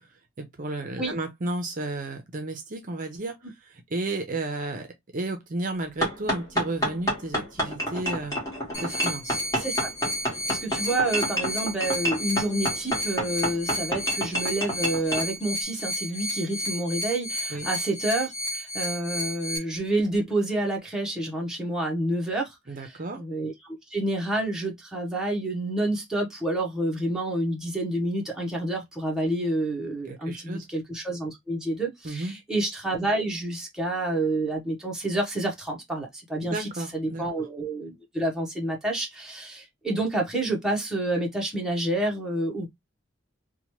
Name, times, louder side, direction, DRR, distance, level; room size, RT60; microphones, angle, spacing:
voice 1, 0.4-3.4 3.7-4.9 5.1-8.4 8.8-9.4 17.5-17.7 22.7-23.2 30.1-30.7 32.0-32.4 36.4-37.2, right 2 dB, 40° right, 0.6 m, -32 dB
sound 1, 6.0-15.3, equal, 15° left, 1.4 m, -28 dB
sound 2, 8.7-19.6, equal, 35° left, 1.3 m, -32 dB
voice 2, 9.5-9.9 10.3-22.6 22.8-23.5 23.9-42.7, right 1 dB, 5° right, 0.8 m, -29 dB
2.9 x 2.2 x 2.9 m
head